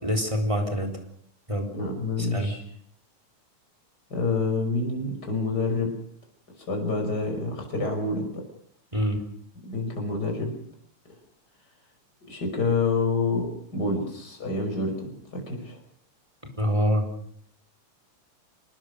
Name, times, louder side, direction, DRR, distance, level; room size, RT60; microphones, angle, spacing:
voice 1, 0.0-0.9 1.5-1.7 2.3-2.5 8.9-9.2 16.6-17.1, equal, 10° right, 5 dB, 3.7 m, -25 dB
voice 2, 1.7-2.6 4.1-5.9 6.7-8.4 9.6-10.5 12.3-15.8, left 3 dB, 30° left, 2 dB, 6.1 m, -27 dB
27.5 x 19.5 x 6.6 m, 0.69 s
omnidirectional pair, 3.5 m